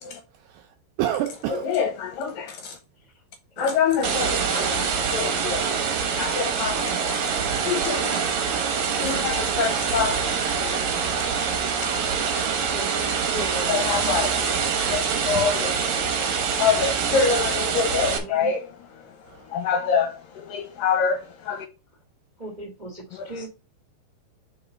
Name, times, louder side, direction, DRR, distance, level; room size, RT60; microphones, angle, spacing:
voice 1, 0.4-1.7 6.6-6.8 7.4-7.5 9.1-9.2 14.8-15.8 19.2-19.6, right 12 dB, 80° right, 2.1 m, -32 dB
voice 2, 1.5-2.8 3.6-5.8 6.1-7.3 7.6-8.2 8.8-11.9 13.7-14.3 14.9-18.6 19.0-19.1 19.5-21.7 23.1-23.5, left 6 dB, 75° left, 2.2 m, -27 dB
voice 3, 3.5-5.0 8.9-9.4 12.7-14.1 17.9-18.5 22.4-23.5, right 1 dB, 30° right, 0.8 m, -37 dB
sound 1, 4.0-18.2, right 6 dB, 65° right, 1.9 m, -25 dB
4.9 x 4.7 x 5.2 m
omnidirectional pair, 4.6 m